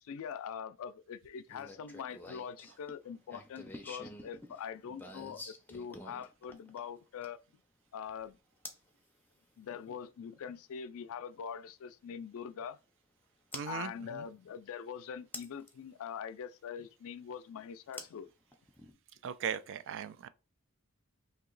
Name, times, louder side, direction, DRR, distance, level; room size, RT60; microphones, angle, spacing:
voice 1, 0.0-7.4 7.9-8.4 9.6-12.8 13.6-18.3, left 7 dB, 65° left, 0.4 m, -43 dB
sound 1, 1.5-7.5 8.6-8.9 10.8-10.9 13.5-13.7 15.3-15.7 17.9-18.9, left 2 dB, 10° left, 0.5 m, -48 dB
voice 2, 13.5-14.3 19.2-20.3, right 8 dB, 60° right, 0.3 m, -38 dB
2.9 x 2.8 x 3.8 m
head